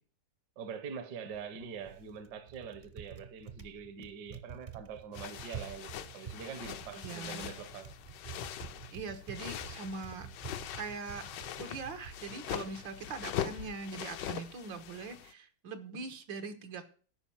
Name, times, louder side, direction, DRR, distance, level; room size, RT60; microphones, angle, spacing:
voice 1, 0.6-8.0, right 6 dB, 65° right, 1.5 m, -44 dB
Typing, 1.2-13.6, right 7 dB, 40° right, 0.7 m, -49 dB
sound 1, 5.1-15.3, left 11 dB, 75° left, 1.3 m, -42 dB
voice 2, 6.9-7.5 8.9-10.3 10.7-11.3 11.6-16.8, right 4 dB, 80° right, 1.9 m, -42 dB
13.5 x 5.3 x 7.0 m
omnidirectional pair, 2.0 m